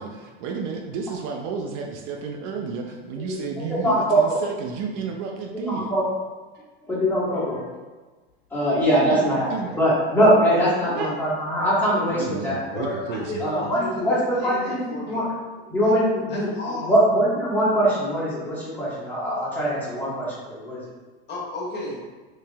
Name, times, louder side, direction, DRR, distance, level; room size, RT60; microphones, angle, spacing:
voice 1, 0.0-5.9 9.0-9.8 10.9-11.1 12.1-13.6, right 5 dB, 55° right, 2 dB, 0.5 m, -32 dB
voice 2, 3.7-4.4 5.7-6.0 6.8-7.7 8.5-9.5 9.8-12.9 13.4-15.2 15.7-16.5 16.9-20.8, equal, 5° left, -9 dB, 1.4 m, -22 dB
voice 3, 12.7-15.3 15.8-15.9 16.3-17.0 21.3-22.0, left 1 dB, 35° left, -4 dB, 1.3 m, -33 dB
3.0 x 2.8 x 3.4 m, 1.3 s
supercardioid pair, 120°, 30 cm